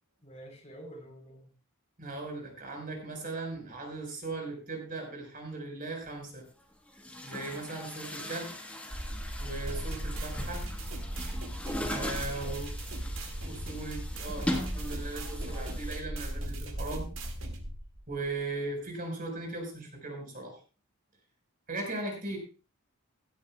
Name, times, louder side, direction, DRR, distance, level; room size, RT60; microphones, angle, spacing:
voice 1, 0.2-1.5 9.8-10.1 12.0-12.6, equal, 30° left, 2 dB, 4.0 m, -49 dB
voice 2, 2.0-6.4 7.2-8.5 9.4-10.6 11.9-12.7 13.4-17.1 18.1-20.6 21.7-22.4, right 2 dB, 40° right, 2 dB, 4.8 m, -38 dB
Chatter / Gurgling / Tap, 6.1-6.2 6.9-16.0, equal, 5° left, 1.4 m, -39 dB
sound 1, 8.9-18.4, equal, 20° right, 1.0 m, -38 dB
sound 2, 9.7-17.7, right 2 dB, 60° right, 2.1 m, -44 dB
17.0 x 12.5 x 2.3 m, 0.35 s
head